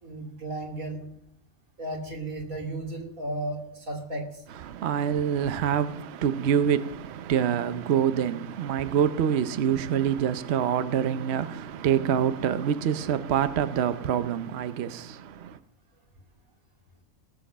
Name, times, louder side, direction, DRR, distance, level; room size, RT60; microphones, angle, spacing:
voice 1, 0.0-1.1 1.8-4.4, right 1 dB, 85° right, 3.1 m, -34 dB
voice 2, 4.7-15.6, right 8 dB, 60° right, 0.9 m, -26 dB
19.0 x 7.5 x 5.7 m
omnidirectional pair, 1.4 m